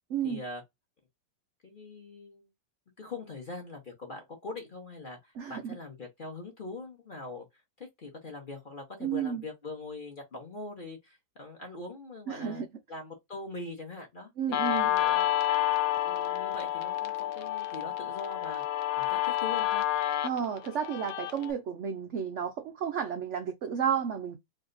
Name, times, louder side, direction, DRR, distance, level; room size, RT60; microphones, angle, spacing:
voice 1, 0.2-0.6 1.6-2.5 3.0-7.5 7.8-15.3 15.7-15.8 16.0-18.6 18.9-19.8, left 2 dB, 35° left, 0.9 m, -42 dB
voice 2, 5.4-5.8 9.0-9.4 12.3-12.7 14.4-14.9 20.2-24.4, right 8 dB, 80° right, 0.6 m, -32 dB
Guitar, 14.5-21.5, left 13 dB, 80° left, 0.6 m, -29 dB
3.3 x 2.6 x 3.8 m
omnidirectional pair, 2.0 m